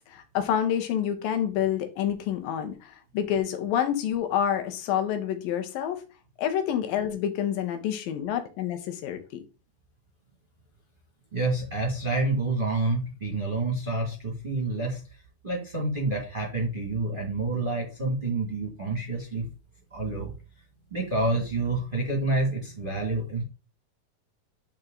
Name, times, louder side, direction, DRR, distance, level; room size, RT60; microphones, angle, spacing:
voice 1, 0.1-6.0 6.4-9.2, left 9 dB, 80° left, 2.8 m, -28 dB
voice 2, 11.3-15.0 15.4-19.4 19.9-20.3 20.9-23.4, right 2 dB, 20° right, 1.6 m, -28 dB
9.5 x 4.4 x 3.9 m
omnidirectional pair, 4.0 m